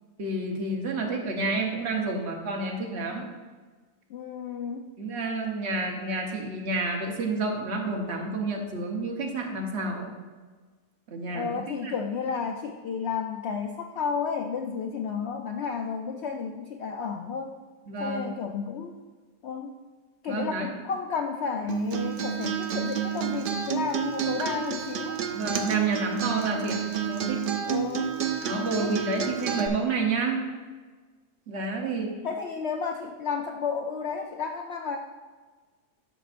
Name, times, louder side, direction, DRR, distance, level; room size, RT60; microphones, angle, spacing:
voice 1, 0.2-3.3 5.0-10.1 11.1-11.9 17.9-18.3 20.3-20.7 25.3-27.4 28.4-30.5 31.5-32.1, right 3 dB, 50° right, 1 dB, 1.2 m, -29 dB
voice 2, 4.1-4.9 11.3-17.6 18.0-18.9 19.4-19.8 20.2-25.3 27.7-28.2 28.5-28.9 32.2-35.0, left 6 dB, 75° left, 4 dB, 0.6 m, -32 dB
Acoustic guitar, 21.7-29.7, right 8 dB, 70° right, 0.5 m, -30 dB
11.5 x 6.2 x 2.5 m, 1.4 s
omnidirectional pair, 1.7 m